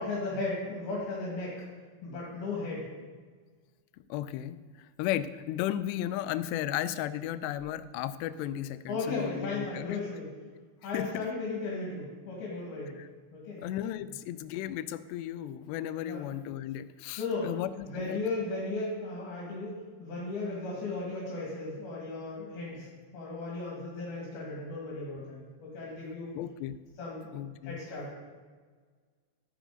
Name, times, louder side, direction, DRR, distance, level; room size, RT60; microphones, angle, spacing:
voice 1, 0.0-1.6 2.0-2.9 8.9-10.3 10.8-12.9 13.3-13.6 14.0-14.1 16.0-16.2 17.2-17.5 17.8-22.9 23.1-26.3 27.0-27.3 27.6-28.2, left 3 dB, 65° left, -5 dB, 3.9 m, -35 dB
voice 2, 4.1-10.0 10.9-11.2 13.0-13.1 13.6-18.2 26.4-26.8 27.3-27.8, left 12 dB, 90° left, 14 dB, 2.7 m, -35 dB
13.5 x 10.0 x 3.9 m, 1.5 s
omnidirectional pair, 4.8 m